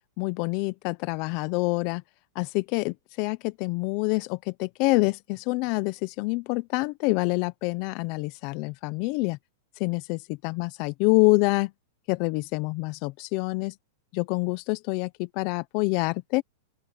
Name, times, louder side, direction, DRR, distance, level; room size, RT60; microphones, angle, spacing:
voice 1, 0.2-2.0 2.3-9.4 9.8-11.7 12.1-13.7 14.1-16.4, left 24 dB, 45° left, 0.8 m, -26 dB
open air
hypercardioid pair, 140°, 0 cm